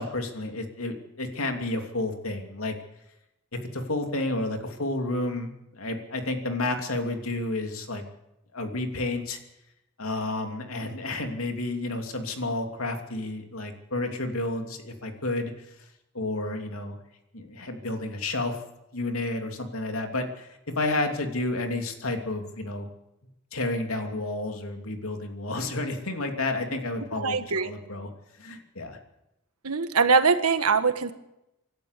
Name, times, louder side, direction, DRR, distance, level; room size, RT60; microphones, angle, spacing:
voice 1, 0.0-2.7 3.5-8.0 8.5-9.4 10.0-15.5 16.1-17.0 17.3-18.6 18.9-22.9 23.5-28.1 28.4-29.0, left 2 dB, 75° left, 4 dB, 2.9 m, -31 dB
voice 2, 27.2-27.7 29.6-31.1, right 5 dB, 85° right, 10 dB, 1.5 m, -22 dB
25.5 x 12.0 x 8.4 m, 0.89 s
head